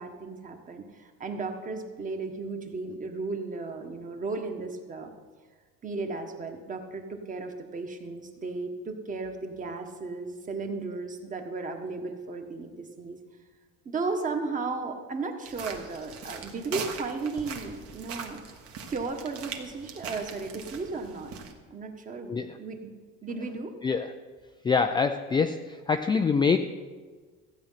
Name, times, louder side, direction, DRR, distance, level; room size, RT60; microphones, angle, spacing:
voice 1, 0.0-5.1 5.8-13.2 13.8-18.4 18.9-21.4 21.7-22.9 23.2-23.7, right 3 dB, 25° right, 4 dB, 1.4 m, -35 dB
sound 1, 15.4-21.5, right 6 dB, 50° right, 1.6 m, -41 dB
voice 2, 23.8-24.1 24.6-26.6, left 5 dB, 15° left, 7 dB, 0.4 m, -25 dB
15.0 x 8.8 x 5.8 m, 1.4 s
cardioid pair, 140°, 31 cm